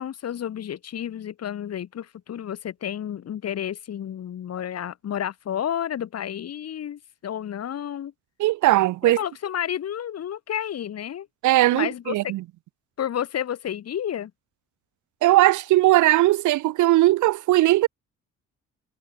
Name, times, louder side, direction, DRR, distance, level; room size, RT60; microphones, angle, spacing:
voice 1, 0.0-8.1 9.0-11.3 11.7-12.3 13.0-14.3, left 10 dB, 55° left, 1.6 m, -31 dB
voice 2, 8.4-9.2 11.4-12.4 15.2-17.9, right 17 dB, 75° right, 0.6 m, -19 dB
cardioid pair, 90°, 30 cm